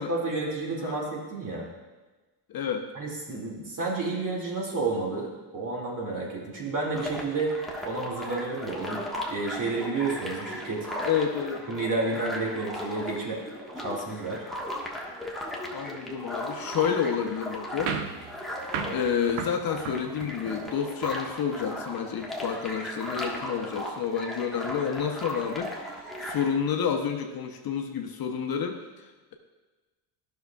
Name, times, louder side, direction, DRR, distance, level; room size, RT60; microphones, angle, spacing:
voice 1, 0.0-1.7 2.9-7.5 7.8-10.9 11.7-13.4 13.7-14.4, right 3 dB, 40° right, -3 dB, 2.4 m, -31 dB
voice 2, 2.5-2.9 11.0-11.6 15.7-18.0 18.9-29.4, left 7 dB, 45° left, 4 dB, 0.8 m, -30 dB
sound 1, 6.9-26.6, equal, ahead, 1.4 m, -37 dB
sound 2, 17.9-20.7, right 7 dB, 75° right, 0.8 m, -35 dB
11.5 x 6.3 x 2.4 m, 1.2 s
supercardioid pair, 80°, 49 cm